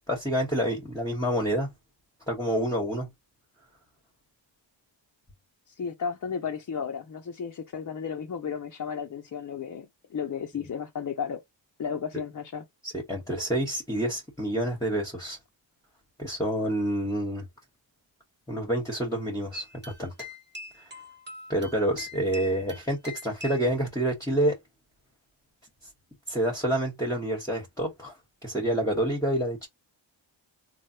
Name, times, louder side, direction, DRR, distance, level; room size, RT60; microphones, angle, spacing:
voice 1, 0.1-1.7 2.3-3.1 12.8-15.4 16.2-17.4 18.5-19.6 20.0-20.1 21.5-24.6 26.3-28.1 28.4-29.7, right 1 dB, 5° left, 1.2 m, -28 dB
voice 2, 5.7-11.4 11.8-12.6, left 6 dB, 40° left, 0.6 m, -34 dB
sound 1, 19.5-23.7, left 2 dB, 20° right, 1.2 m, -44 dB
3.2 x 2.3 x 2.7 m
cardioid pair, 75°, 48 cm